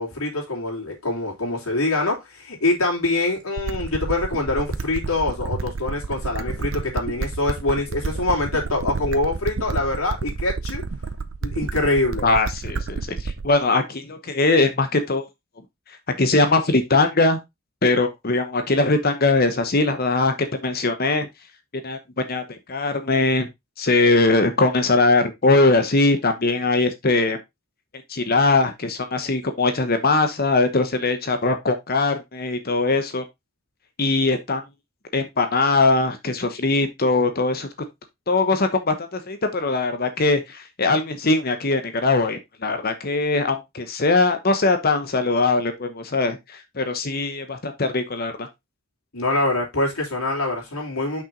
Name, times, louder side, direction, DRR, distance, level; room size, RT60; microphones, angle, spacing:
voice 1, 0.0-10.8 11.4-12.3 49.1-51.2, left 2 dB, 85° left, 3.5 m, -24 dB
sound 1, 3.6-13.6, right 4 dB, 70° right, 0.7 m, -30 dB
voice 2, 12.2-15.3 16.2-17.4 17.8-21.3 21.8-22.0 22.3-23.5 23.8-27.4 28.1-33.2 34.0-34.6 35.1-37.7 38.3-48.5, left 3 dB, 45° left, 1.0 m, -21 dB
5.9 x 5.9 x 3.8 m
head